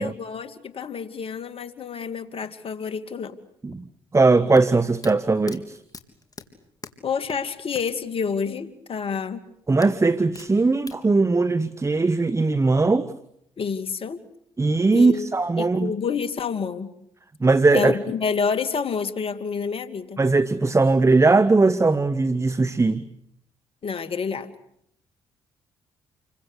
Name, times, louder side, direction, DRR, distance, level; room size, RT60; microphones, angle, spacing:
voice 1, 0.0-3.4 7.0-9.4 13.6-14.2 14.9-15.3 15.6-16.9 17.7-20.2 23.8-24.5, left 5 dB, 50° left, 2.7 m, -28 dB
voice 2, 4.1-5.8 9.7-13.1 14.6-15.9 17.4-18.0 20.2-23.1, right 3 dB, 25° right, 1.3 m, -19 dB
sound 1, 4.6-8.0 8.3-8.4 9.8-11.0, left 4 dB, 30° left, 3.7 m, -42 dB
29.0 x 24.0 x 8.3 m
hypercardioid pair, 55°, 12 cm